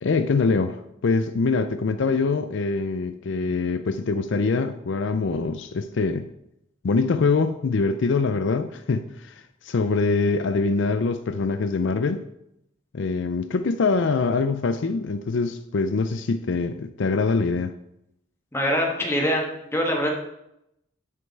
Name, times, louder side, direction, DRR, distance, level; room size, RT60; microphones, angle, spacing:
voice 1, 0.0-6.3 6.8-12.2 12.9-17.7, left 4 dB, 65° left, 10 dB, 0.4 m, -24 dB
voice 2, 18.5-19.4 19.7-20.1, equal, 10° left, 0 dB, 1.4 m, -23 dB
9.8 x 5.3 x 4.6 m, 0.82 s
head